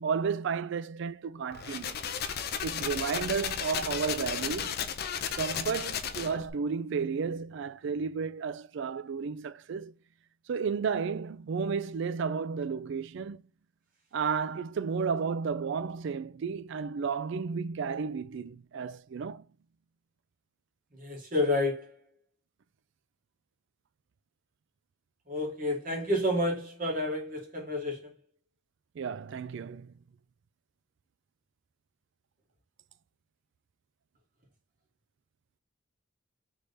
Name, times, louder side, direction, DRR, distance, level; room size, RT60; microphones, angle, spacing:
voice 1, 0.0-2.0 2.6-4.8 5.4-9.9 10.5-13.4 14.1-19.4 29.0-29.9, right 5 dB, 60° right, 0.3 m, -32 dB
sound 1, 1.5-6.5, left 7 dB, 45° left, 0.4 m, -34 dB
voice 2, 21.0-22.0 25.3-28.1, left 1 dB, 40° right, 1.5 m, -30 dB
3.4 x 3.3 x 4.0 m
head